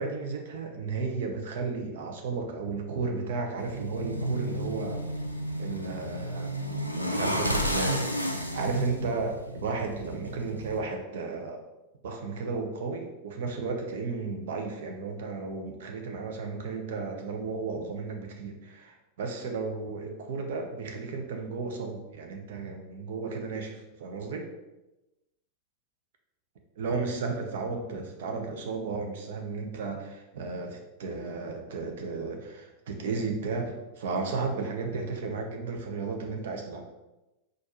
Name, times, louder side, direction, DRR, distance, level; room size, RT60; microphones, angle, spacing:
voice 1, 0.0-5.0 5.6-6.6 7.0-8.2 8.5-11.6 12.0-24.5 26.7-36.8, right 4 dB, 55° right, 3 dB, 0.7 m, -34 dB
sound 1, 3.6-10.8, equal, 90° right, 0.4 m, -32 dB
4.4 x 2.5 x 4.3 m, 0.99 s
figure-of-eight pair, 90°, 0 cm